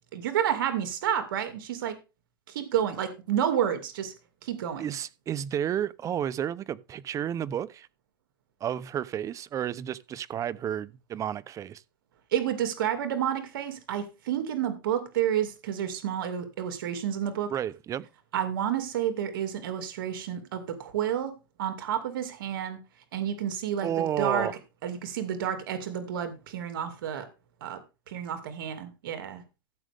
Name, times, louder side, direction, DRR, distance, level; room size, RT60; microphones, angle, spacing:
voice 1, 0.1-2.0 2.5-4.1 4.4-4.8 12.3-17.5 18.3-21.3 21.6-22.8 23.1-24.5 24.8-27.2 27.6-27.8 28.1-29.4, right 9 dB, 80° right, 2.4 m, -30 dB
voice 2, 4.8-7.9 8.6-11.8 17.5-18.1 23.8-24.5, right 10 dB, 30° right, 0.7 m, -31 dB
15.0 x 7.8 x 3.5 m
supercardioid pair, 125°, 11 cm